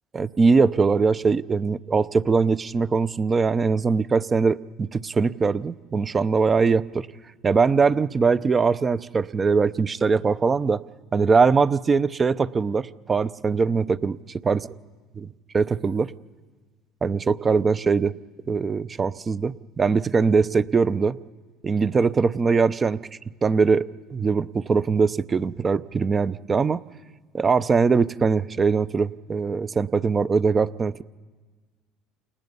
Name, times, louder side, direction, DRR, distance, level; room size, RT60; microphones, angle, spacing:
voice 1, 0.1-7.1 7.4-10.8 11.1-14.6 15.2-15.3 15.5-16.1 17.0-18.1 18.5-21.2 21.6-23.0 23.4-26.8 27.3-31.0, right 5 dB, 30° right, 15 dB, 0.7 m, -21 dB
29.0 x 28.5 x 5.5 m, 1.4 s
hypercardioid pair, 75°, 0 cm